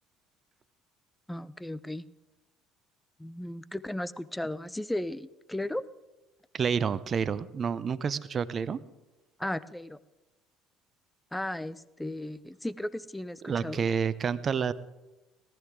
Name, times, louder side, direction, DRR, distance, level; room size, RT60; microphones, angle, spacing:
voice 1, 1.3-2.1 3.2-5.8 9.4-10.0 11.3-13.8, left 1 dB, 5° left, 18 dB, 0.6 m, -35 dB
voice 2, 6.5-8.8 13.4-14.7, right 6 dB, 40° right, 17 dB, 0.6 m, -29 dB
18.5 x 13.5 x 3.7 m, 1.1 s
hypercardioid pair, 60°, 0 cm